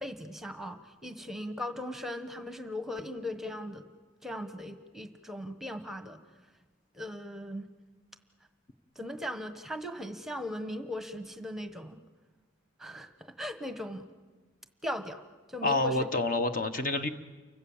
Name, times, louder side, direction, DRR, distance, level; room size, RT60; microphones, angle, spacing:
voice 1, 0.0-3.9 4.2-6.2 6.9-7.7 8.9-12.0 12.8-14.1 14.8-15.2 15.5-16.1, left 1 dB, ahead, 8 dB, 1.3 m, -38 dB
voice 2, 15.6-17.1, left 2 dB, 45° left, 8 dB, 1.3 m, -28 dB
29.5 x 24.5 x 7.4 m, 1.3 s
head